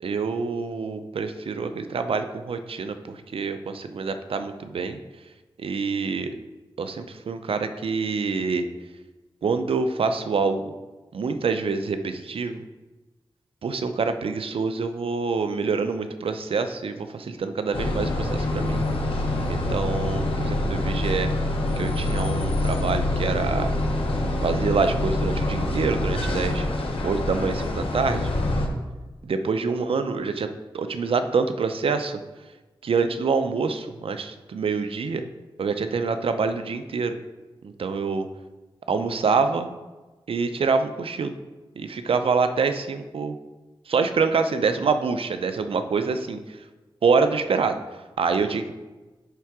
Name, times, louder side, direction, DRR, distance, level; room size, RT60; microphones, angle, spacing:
voice 1, 0.0-5.0 5.6-6.4 6.8-8.7 9.4-10.7 11.1-12.6 13.6-18.8 19.5-21.3 21.8-23.7 24.4-26.7 27.0-28.3 29.2-32.2 32.8-35.2 35.6-37.2 37.6-38.3 38.9-39.7 40.3-41.3 41.8-43.4 43.9-46.6 47.0-47.8 48.2-48.7, right 4 dB, 80° right, 8 dB, 0.6 m, -26 dB
sound 1, 17.7-28.7, left 1 dB, 80° left, 1.1 m, -25 dB
10.5 x 3.7 x 4.8 m, 1.2 s
wide cardioid pair, 90°, 9 cm